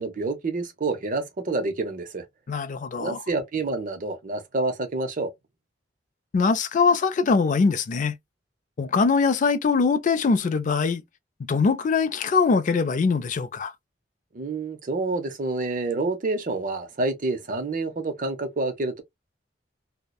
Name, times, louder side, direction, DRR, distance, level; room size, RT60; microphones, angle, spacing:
voice 1, 0.0-2.2 2.9-5.3 14.3-19.0, right 3 dB, 45° right, 0.6 m, -28 dB
voice 2, 2.5-3.2 6.3-8.2 8.8-11.0 11.4-13.7, left 4 dB, 45° left, 0.3 m, -22 dB
2.7 x 2.0 x 2.2 m
head